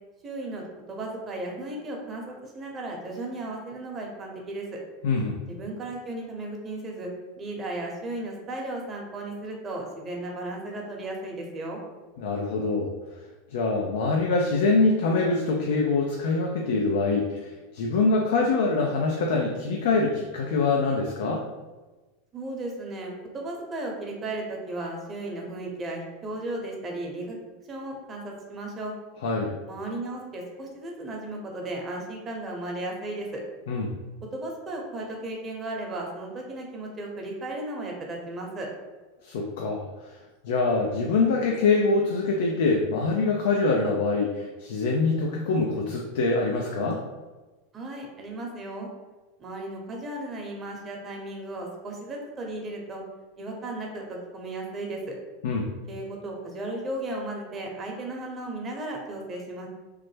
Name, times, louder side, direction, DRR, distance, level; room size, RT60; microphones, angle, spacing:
voice 1, 0.2-4.8 5.5-7.1 7.4-11.8 22.3-27.4 27.7-28.9 29.7-33.4 34.3-38.7 47.7-48.9 49.4-53.0 53.4-55.1 55.9-59.7, right 2 dB, 30° right, 0 dB, 0.8 m, -35 dB
voice 2, 5.0-5.4 12.2-12.9 13.5-21.4 29.2-29.5 33.7-34.0 39.2-40.2 40.4-47.0 55.4-55.7, left 3 dB, 70° left, 0 dB, 0.4 m, -24 dB
3.2 x 2.0 x 3.2 m, 1.2 s
hypercardioid pair, 95°, 0 cm